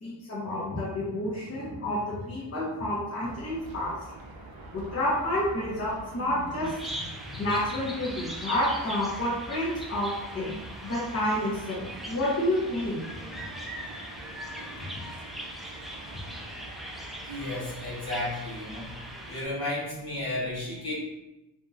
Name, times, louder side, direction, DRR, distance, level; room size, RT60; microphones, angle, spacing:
voice 1, 0.0-3.9 4.7-7.0 7.3-13.1 14.8-14.9, left 1 dB, 35° left, -7 dB, 0.9 m, -29 dB
sound 1, 3.2-19.3, right 2 dB, 55° right, 0.6 m, -45 dB
Bird vocalization bird call bird song, 6.6-19.4, equal, ahead, 0.3 m, -41 dB
voice 2, 17.2-18.9 19.3-20.9, left 1 dB, 60° left, -6 dB, 1.3 m, -33 dB
2.8 x 2.6 x 2.4 m, 0.96 s
cardioid pair, 45°, 44 cm